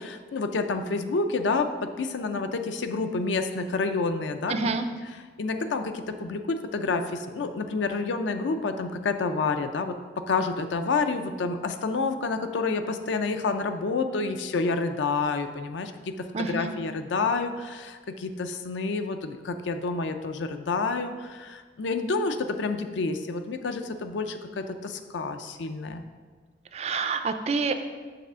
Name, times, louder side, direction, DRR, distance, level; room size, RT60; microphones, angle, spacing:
voice 1, 0.0-4.7 5.4-9.9 10.3-26.0, left 4 dB, 80° left, 8 dB, 0.5 m, -29 dB
voice 2, 4.5-4.9 14.3-14.4 16.3-16.7 26.7-27.8, right 4 dB, 35° right, 8 dB, 0.3 m, -28 dB
6.8 x 3.3 x 6.1 m, 1.5 s
head